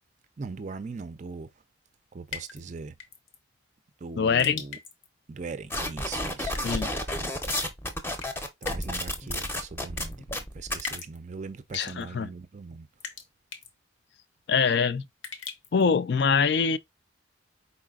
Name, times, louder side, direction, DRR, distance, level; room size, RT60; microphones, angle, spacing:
voice 1, 0.4-1.5 2.1-3.0 4.0-4.8 5.3-6.8 7.1-7.4 8.6-12.9, right 4 dB, 40° right, 0.4 m, -40 dB
sound 1, 2.3-2.6 3.0-3.4 4.4-5.1 6.5-6.9 8.2-8.9 9.2-9.3 10.0-10.1 10.8-11.2 11.7-12.0 13.0-13.3 13.5-13.7 15.2-15.8, left 7 dB, 75° left, 0.9 m, -39 dB
voice 2, 4.2-4.6 6.6-6.9 11.7-12.3 14.5-15.1 15.7-16.8, left 6 dB, 55° left, 0.4 m, -24 dB
sound 2, 5.7-11.0, left 1 dB, 10° left, 0.6 m, -31 dB
4.7 x 4.1 x 2.3 m
head